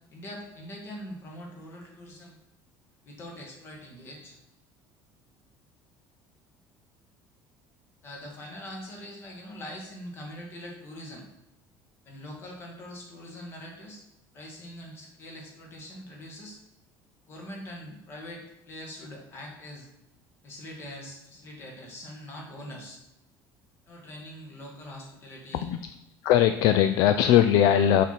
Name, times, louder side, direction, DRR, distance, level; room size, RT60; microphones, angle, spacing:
voice 1, 0.1-2.4 3.0-4.4 8.0-11.2 12.0-14.0 14.3-16.6 17.2-19.9 20.4-23.0 23.8-25.7, left 1 dB, 30° left, 0 dB, 1.6 m, -43 dB
voice 2, 25.6-25.9 26.2-28.0, left 10 dB, 55° left, 9 dB, 0.3 m, -20 dB
5.8 x 4.4 x 5.6 m, 0.87 s
cardioid pair, 175°, 8 cm